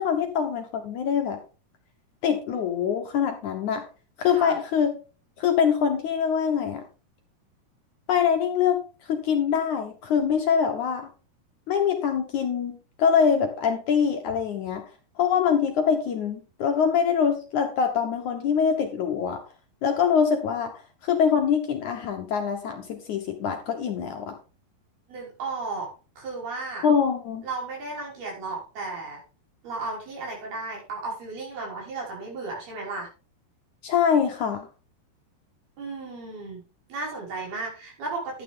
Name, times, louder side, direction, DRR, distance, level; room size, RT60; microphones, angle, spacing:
voice 1, 0.0-1.4 2.2-3.8 4.2-4.9 5.4-6.8 8.1-8.8 9.1-11.1 11.7-14.8 15.2-19.4 19.8-20.7 21.0-24.4 26.8-27.4 33.8-34.7, left 7 dB, 70° left, 4 dB, 1.9 m, -24 dB
voice 2, 25.1-25.9 26.2-26.9 27.4-29.2 29.6-33.1 35.8-36.6 36.9-38.4, right 3 dB, 65° right, -2 dB, 7.6 m, -34 dB
12.0 x 9.2 x 3.7 m, 0.35 s
omnidirectional pair, 4.9 m